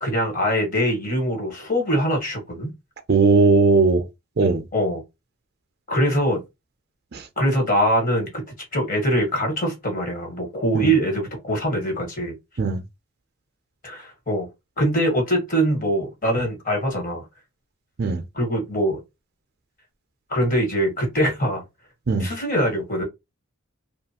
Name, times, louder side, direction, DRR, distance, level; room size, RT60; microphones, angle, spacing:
voice 1, 0.0-2.7 4.7-5.0 5.9-6.4 7.4-8.4 8.7-12.3 13.8-14.5 14.8-17.2 18.3-19.0 20.3-21.6 22.2-23.0, equal, 40° left, 1.4 m, -23 dB
voice 2, 3.1-4.0 4.4-4.6 7.1-7.2 10.7-10.9 12.6-12.8 18.0-18.2 22.1-22.3, right 4 dB, 50° right, 0.5 m, -18 dB
2.7 x 2.4 x 2.8 m
head